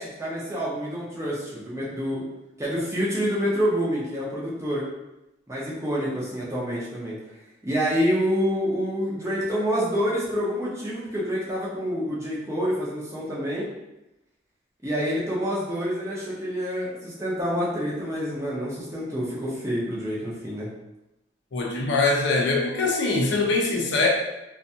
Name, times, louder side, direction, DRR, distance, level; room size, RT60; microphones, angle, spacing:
voice 1, 0.0-2.3 2.6-4.8 5.5-7.2 7.6-13.7 14.8-20.7, equal, 15° right, -6 dB, 0.5 m, -27 dB
voice 2, 21.5-24.1, left 3 dB, 65° left, -1 dB, 0.5 m, -23 dB
2.5 x 2.2 x 2.7 m, 0.96 s
head